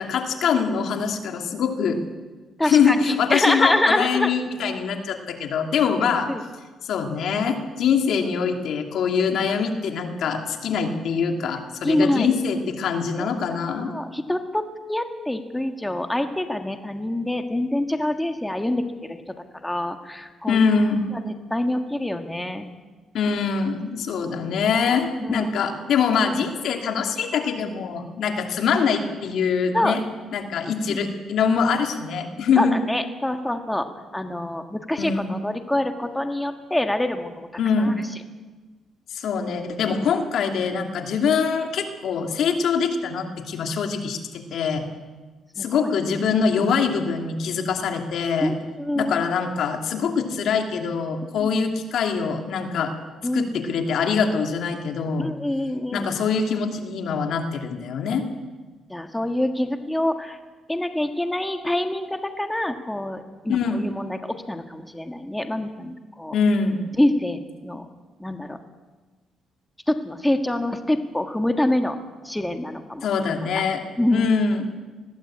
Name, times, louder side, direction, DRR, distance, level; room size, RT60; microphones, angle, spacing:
voice 1, 0.0-2.0 2.6-6.3 6.8-13.9 20.5-21.1 23.1-30.0 30.3-32.7 34.9-35.3 37.6-38.0 39.1-44.9 45.6-48.5 48.9-52.9 53.3-55.3 55.9-58.3 63.5-63.9 66.3-66.9 73.0-73.8 74.1-74.7, left 6 dB, 70° left, 4 dB, 2.6 m, -23 dB
voice 2, 2.6-4.3 6.3-6.4 11.8-12.3 13.2-13.3 13.9-14.6 14.9-19.2 19.6-20.6 21.3-22.7 25.2-25.5 29.7-30.0 30.9-31.0 32.6-33.9 34.1-37.5 37.8-38.0 45.6-45.9 48.4-49.1 51.4-51.5 53.2-53.5 55.2-56.1 58.9-60.4 60.7-66.3 67.0-67.9 68.2-68.6 69.9-72.0 72.2-73.1 73.5-73.6 74.0-74.3, left 1 dB, 10° left, 6 dB, 1.7 m, -25 dB
21.0 x 15.5 x 8.8 m, 1.3 s
cardioid pair, 90°, 0 cm